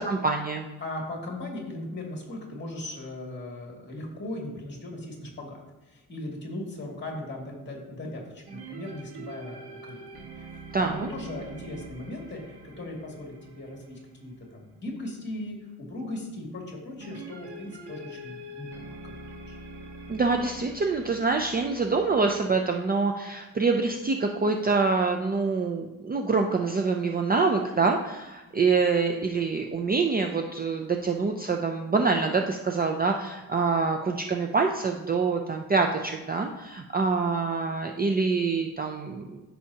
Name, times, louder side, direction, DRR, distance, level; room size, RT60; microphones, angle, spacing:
voice 1, 0.0-0.7 10.7-11.1 20.1-39.4, right 4 dB, 25° right, 3 dB, 0.5 m, -26 dB
voice 2, 0.8-19.1 19.4-19.6, left 1 dB, 30° left, -1 dB, 2.3 m, -38 dB
sound 1, 8.5-15.1 17.0-22.4, right 2 dB, 90° right, 1.6 m, -44 dB
13.0 x 5.6 x 2.8 m, 1.1 s
cardioid pair, 130°, 38 cm